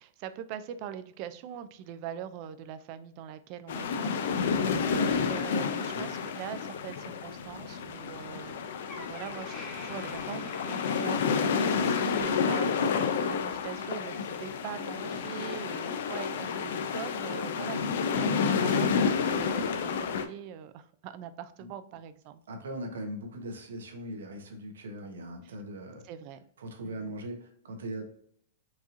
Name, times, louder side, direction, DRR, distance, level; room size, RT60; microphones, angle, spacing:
voice 1, 0.0-4.4 4.9-22.4 25.4-25.5 26.0-26.4 26.8-27.1, right 10 dB, 45° right, 12 dB, 0.4 m, -42 dB
sound 1, 3.7-20.3, left 6 dB, 70° left, 0.5 m, -30 dB
voice 2, 4.4-5.1 5.9-6.1 21.6-21.7 22.5-26.0 26.6-28.0, right 1 dB, 85° right, 4 dB, 1.1 m, -40 dB
Door, 8.4-8.5 8.9-12.4 12.7-13.0 13.7-13.8, left 1 dB, 5° left, 0.9 m, -48 dB
4.6 x 2.9 x 2.6 m, 0.64 s
hypercardioid pair, 140°, 0 cm